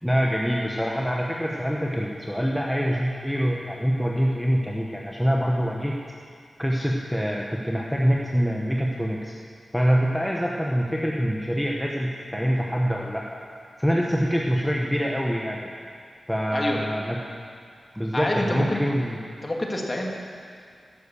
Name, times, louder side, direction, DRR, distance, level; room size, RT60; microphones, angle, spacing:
voice 1, 0.0-6.0 6.6-9.3 9.7-13.2 13.8-15.7 16.3-17.2 17.9-19.2, equal, ahead, -2 dB, 1.0 m, -25 dB
voice 2, 16.5-16.9 18.1-18.8 19.4-20.1, left 1 dB, 25° left, 0 dB, 1.8 m, -27 dB
12.5 x 11.5 x 6.9 m, 2.2 s
wide cardioid pair, 150°, 0 cm